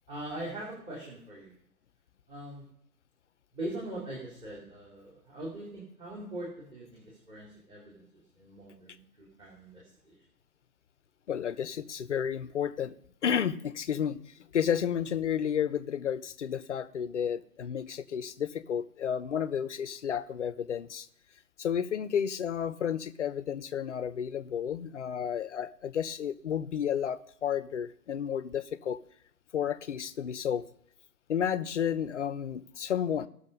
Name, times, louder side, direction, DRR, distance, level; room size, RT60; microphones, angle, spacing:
voice 1, 0.1-1.5 2.3-2.7 3.5-8.1 8.4-10.2, right 1 dB, 10° right, 2.6 m, -41 dB
voice 2, 11.3-12.9 13.2-14.2 14.5-21.1 21.6-29.0 29.5-30.6 31.3-33.3, left 8 dB, 50° left, 0.7 m, -31 dB
17.0 x 6.5 x 5.3 m
figure-of-eight pair, 135°, 48 cm